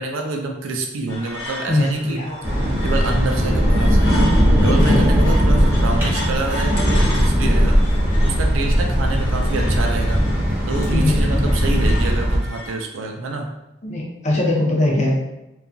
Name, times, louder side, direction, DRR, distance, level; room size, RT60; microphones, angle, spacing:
voice 1, 0.0-2.2 2.8-4.2 4.6-7.8 8.2-10.2 10.7-13.5, right 3 dB, 75° right, 2 dB, 0.4 m, -27 dB
sound 1, 1.1-12.7, left 1 dB, 70° left, 0.7 m, -34 dB
voice 2, 1.7-2.8 4.6-5.0 10.9-11.6 13.8-15.2, left 1 dB, 35° left, -1 dB, 0.5 m, -22 dB
sound 2, 2.4-12.4, equal, 10° right, 0.6 m, -18 dB
2.7 x 2.3 x 2.6 m, 0.92 s
head